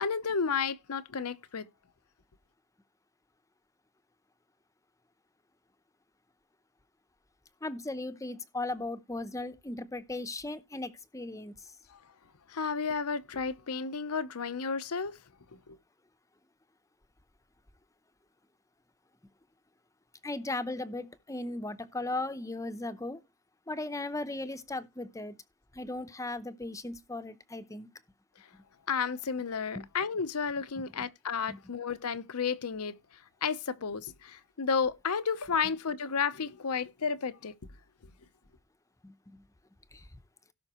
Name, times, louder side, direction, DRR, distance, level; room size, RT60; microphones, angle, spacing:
voice 1, 0.0-1.7 12.5-15.2 15.7-15.8 28.9-33.0 33.4-37.5, left 5 dB, 85° left, 0.8 m, -32 dB
voice 2, 7.6-11.7 20.2-23.2 23.7-25.4 25.7-27.9 29.7-29.9 30.8-30.9 31.5-31.6 39.0-39.4 39.9-40.1, left 2 dB, 15° left, 0.7 m, -37 dB
17.0 x 5.8 x 3.0 m
head